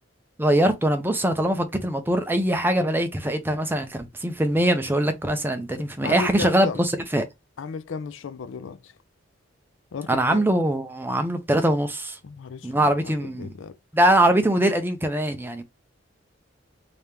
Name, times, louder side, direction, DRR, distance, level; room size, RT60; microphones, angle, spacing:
voice 1, 0.4-7.3 10.1-12.2 12.6-13.5 13.9-15.6, right 1 dB, 10° right, 0.5 m, -22 dB
voice 2, 6.0-6.8 7.6-8.9 9.9-10.4 12.2-13.8, left 5 dB, 75° left, 0.4 m, -35 dB
3.3 x 2.8 x 3.3 m
head